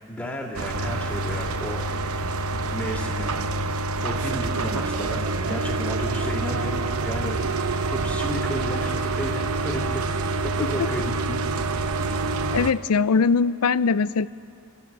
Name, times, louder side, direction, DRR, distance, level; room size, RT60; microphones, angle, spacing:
voice 1, 0.1-1.8 2.2-2.3 2.7-3.3 4.0-7.4 7.9-11.5, equal, 10° left, -9 dB, 2.2 m, -33 dB
sound 1, 0.5-12.7, right 3 dB, 70° right, 0.9 m, -27 dB
voice 2, 12.5-14.3, left 5 dB, 85° left, 17 dB, 0.5 m, -21 dB
27.5 x 14.0 x 8.5 m, 2.5 s
head